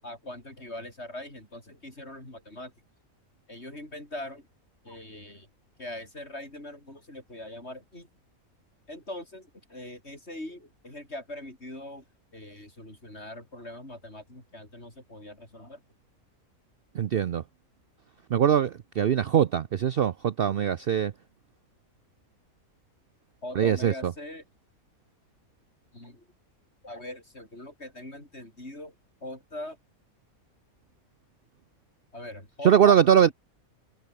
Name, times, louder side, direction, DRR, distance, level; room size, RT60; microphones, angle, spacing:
voice 1, 0.0-2.7 3.5-4.5 4.8-5.5 5.8-8.1 8.9-12.0 12.3-15.8 23.4-24.4 25.9-26.2 26.8-28.9 29.2-29.8 32.1-33.0 33.3-33.4, left 1 dB, 50° left, 8.4 m, -41 dB
voice 2, 16.9-17.4 18.3-21.1 23.5-24.1 32.6-33.3, right 9 dB, 55° right, 0.7 m, -22 dB
omnidirectional pair, 1.5 m